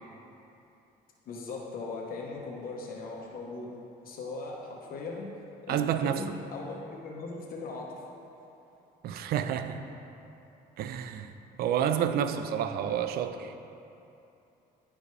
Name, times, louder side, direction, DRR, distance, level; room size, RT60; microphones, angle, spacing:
voice 1, 1.3-3.7 4.0-5.3 5.6-8.0, left 3 dB, 60° left, -2 dB, 1.0 m, -39 dB
voice 2, 5.7-6.3 9.0-9.9 10.8-11.3 11.6-13.5, right 9 dB, 65° right, 9 dB, 0.4 m, -29 dB
10.5 x 5.0 x 3.3 m, 2.8 s
cardioid pair, 110°, 17 cm